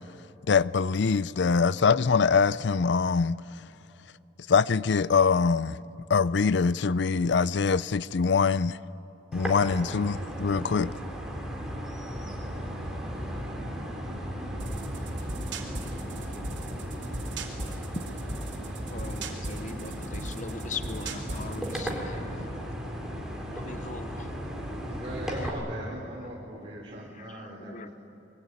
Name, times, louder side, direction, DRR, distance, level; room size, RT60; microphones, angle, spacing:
voice 1, 0.5-3.4 4.5-5.8 6.1-8.8 9.3-10.9, left 5 dB, 70° left, 0.5 m, -23 dB
sound 1, 9.3-25.5, equal, 5° right, 3.8 m, -36 dB
sound 2, 14.6-22.0, right 2 dB, 80° right, 3.1 m, -39 dB
voice 2, 18.9-22.2 23.5-24.3 27.2-27.9, left 4 dB, 40° left, 0.9 m, -40 dB
voice 3, 24.9-27.9, right 1 dB, 30° right, 3.4 m, -40 dB
25.0 x 22.0 x 9.6 m
head